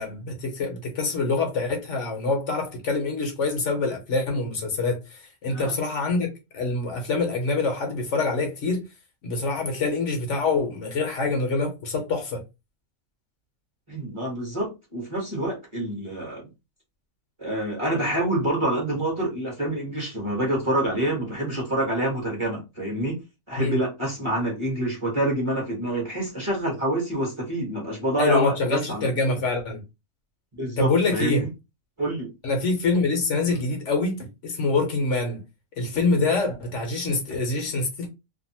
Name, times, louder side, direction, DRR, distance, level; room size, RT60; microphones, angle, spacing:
voice 1, 0.0-8.8 9.2-12.4 23.6-23.8 28.2-29.8 30.8-31.5 32.4-35.4 35.8-38.1, left 3 dB, 65° left, 1.0 m, -25 dB
voice 2, 13.9-16.5 17.4-23.2 23.5-29.4 30.5-31.5 32.0-32.3, right 1 dB, 25° right, 1.0 m, -27 dB
2.6 x 2.5 x 2.7 m
omnidirectional pair, 1.4 m